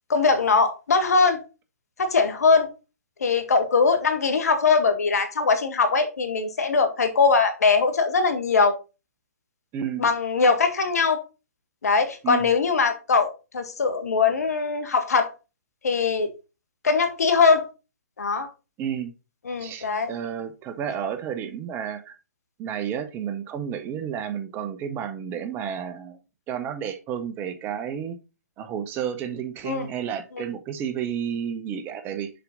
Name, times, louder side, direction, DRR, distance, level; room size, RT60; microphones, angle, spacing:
voice 1, 0.1-1.4 2.0-2.7 3.2-8.8 10.0-11.2 11.8-15.3 15.8-16.3 16.8-17.7 18.2-18.5 19.4-20.2 29.6-29.9, left 4 dB, 70° left, 1.6 m, -21 dB
voice 2, 9.7-10.1 12.2-12.5 18.8-19.1 19.6-22.2 22.6-26.2 26.5-28.2 28.6-32.3, right 8 dB, 25° right, 0.8 m, -31 dB
6.8 x 4.5 x 3.9 m
figure-of-eight pair, 130°, 9 cm